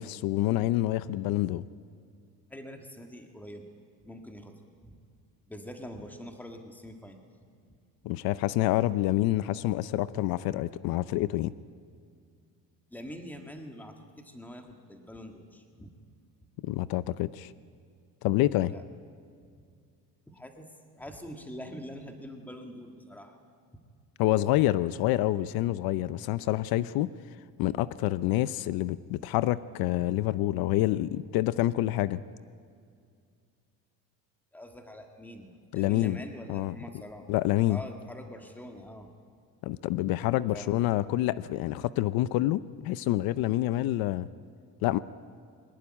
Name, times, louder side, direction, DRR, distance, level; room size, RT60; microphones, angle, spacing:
voice 1, 0.0-1.6 8.0-11.5 16.6-17.5 18.2-18.7 24.2-27.1 27.6-32.2 35.7-36.2 36.5-36.7 37.3-37.8 39.6-44.3 44.8-45.0, left 15 dB, 80° left, 16 dB, 0.7 m, -27 dB
voice 2, 2.5-3.6 4.0-5.0 5.5-7.2 7.6-7.8 12.9-15.9 18.7-18.8 20.3-20.7 20.9-23.4 23.7-23.8 34.5-37.3 37.7-39.1 40.5-40.8, equal, 5° left, 4 dB, 1.7 m, -44 dB
22.0 x 18.5 x 9.9 m, 2.3 s
cardioid pair, 170°, 35 cm